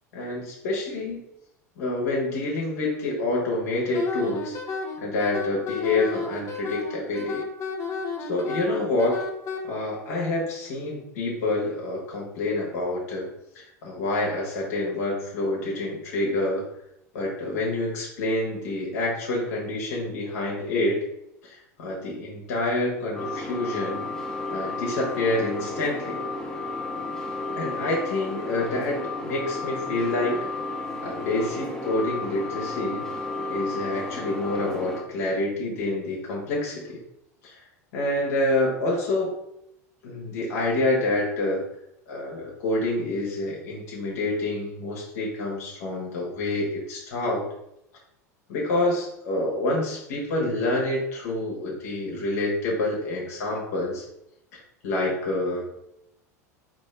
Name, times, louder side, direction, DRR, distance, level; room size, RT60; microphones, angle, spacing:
voice 1, 0.1-1.2 1.8-4.6 5.0-7.4 8.2-9.2 9.6-13.3 13.5-16.6 17.1-21.0 21.4-24.1 24.5-26.2 27.6-30.4 31.0-33.0 33.5-37.0 37.4-37.6 37.9-39.3 40.0-41.6 42.1-47.5 48.5-54.0 54.8-55.6, left 2 dB, 65° left, -3 dB, 1.3 m, -27 dB
Wind instrument woodwind instrument, 3.9-9.6, left 4 dB, 35° left, 0.7 m, -32 dB
sound 1, 23.1-35.0, left 2 dB, 5° left, 0.9 m, -33 dB
4.1 x 3.0 x 3.2 m, 0.79 s
figure-of-eight pair, 80°, 9 cm